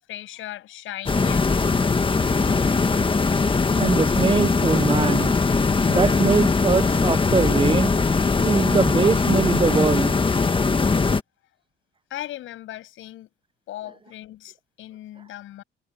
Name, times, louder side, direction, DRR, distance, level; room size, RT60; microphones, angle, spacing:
voice 1, 0.1-1.6 5.8-6.0 12.1-13.3 13.7-15.6, left 14 dB, 85° left, 7.6 m, -38 dB
sound 1, 1.1-11.2, left 4 dB, 25° left, 1.5 m, -20 dB
voice 2, 3.8-5.3 5.9-7.9 8.4-10.2, right 5 dB, 25° right, 0.5 m, -22 dB
cardioid pair, 90°, 20 cm